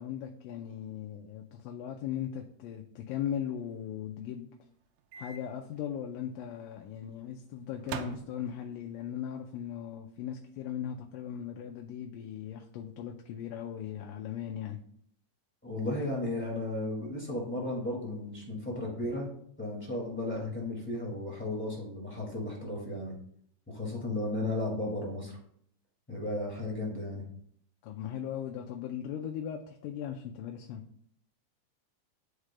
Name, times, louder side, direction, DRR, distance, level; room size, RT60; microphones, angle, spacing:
voice 1, 0.0-4.5 5.2-14.8 27.8-30.8, left 9 dB, 80° left, 3 dB, 2.2 m, -38 dB
Microwave oven, 5.1-5.4 5.8-5.9 7.8-8.8, right 8 dB, 90° right, 2.3 m, -41 dB
voice 2, 15.6-19.3 19.6-23.1 23.7-25.3 26.1-27.2, left 2 dB, 5° left, -4 dB, 0.9 m, -34 dB
11.5 x 4.8 x 2.2 m, 0.65 s
omnidirectional pair, 3.8 m